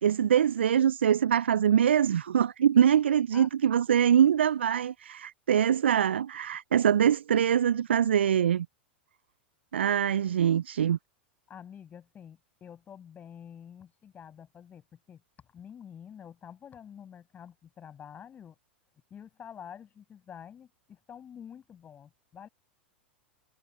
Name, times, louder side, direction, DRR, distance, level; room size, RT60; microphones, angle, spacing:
voice 1, 0.0-8.7 9.7-11.0, right 9 dB, 80° right, 0.3 m, -23 dB
voice 2, 11.5-15.2 15.5-18.6 19.1-22.5, left 8 dB, 25° left, 7.7 m, -48 dB
hypercardioid pair, 95°, 6 cm